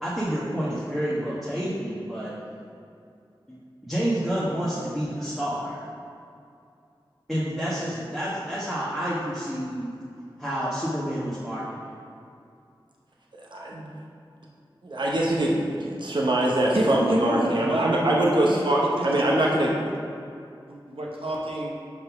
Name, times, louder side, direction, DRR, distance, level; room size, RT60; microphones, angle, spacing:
voice 1, 0.0-2.3 3.5-5.9 7.3-9.9 10.4-11.9, equal, 5° right, -9 dB, 1.3 m, -29 dB
voice 2, 13.4-13.8 14.8-19.7, right 1 dB, 55° right, -3 dB, 0.8 m, -23 dB
voice 3, 16.7-18.0 18.4-19.1 19.3-19.5 20.7-21.7, right 1 dB, 85° right, -2 dB, 0.8 m, -28 dB
5.3 x 4.0 x 5.9 m, 2.5 s
wide cardioid pair, 45°, 9 cm